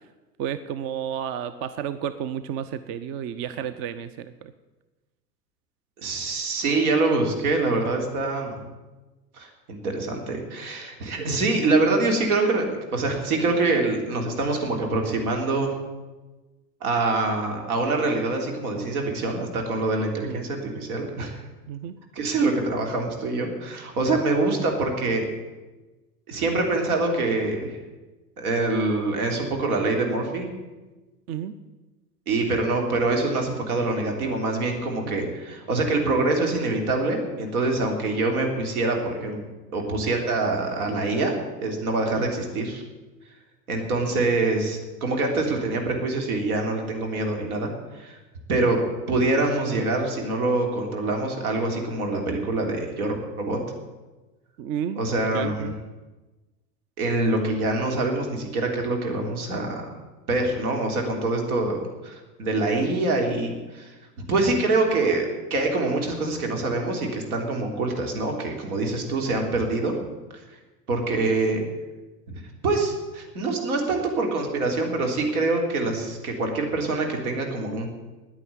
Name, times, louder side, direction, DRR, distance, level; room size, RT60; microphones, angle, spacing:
voice 1, 0.4-4.5 11.2-11.3 20.2-20.5 21.7-22.0 31.3-31.5 35.1-35.2 42.2-42.3 48.5-48.7 54.6-55.0 55.3-55.8, right 9 dB, 30° right, 13 dB, 0.5 m, -32 dB
voice 2, 6.0-8.6 9.3-12.7 12.9-15.7 16.8-21.4 22.1-25.2 26.3-27.8 28.4-30.5 32.3-39.4 39.7-42.8 43.7-48.2 48.5-53.6 54.9-55.7 57.0-59.9 60.3-63.9 64.3-70.0 70.3-70.4 70.9-71.6 72.3-77.9, right 2 dB, 65° right, 3 dB, 3.3 m, -25 dB
9.8 x 9.8 x 9.4 m, 1.2 s
figure-of-eight pair, 90°, 48 cm